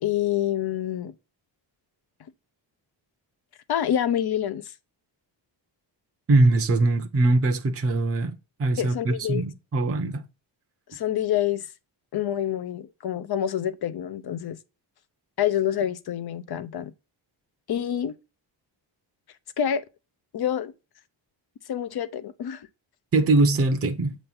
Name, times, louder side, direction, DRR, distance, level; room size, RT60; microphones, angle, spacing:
voice 1, 0.0-1.1 3.7-4.7 8.8-9.4 10.9-11.7 12.1-14.6 15.4-16.9 17.7-18.2 19.6-19.8 20.3-20.7 21.7-22.7, left 10 dB, 55° left, 0.7 m, -27 dB
voice 2, 6.3-10.2 23.1-24.1, right 2 dB, 30° right, 0.8 m, -22 dB
7.8 x 3.1 x 5.5 m
wide cardioid pair, 125°, 45 cm